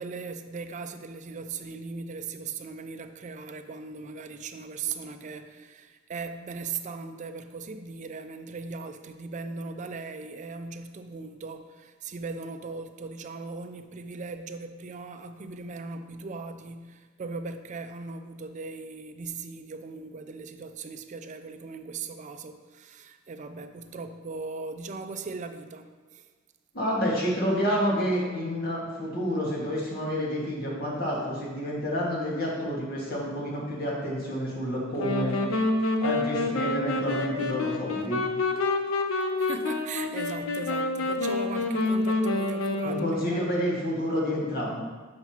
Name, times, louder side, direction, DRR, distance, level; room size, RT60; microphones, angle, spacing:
voice 1, 0.0-26.3 39.4-43.5, right 4 dB, 35° right, 8 dB, 0.4 m, -38 dB
voice 2, 26.7-35.4 36.0-38.2 42.8-44.8, equal, 50° left, -4 dB, 1.7 m, -29 dB
sound 1, 35.0-43.4, left 2 dB, 80° left, 0.6 m, -28 dB
7.5 x 5.7 x 2.8 m, 1.4 s
head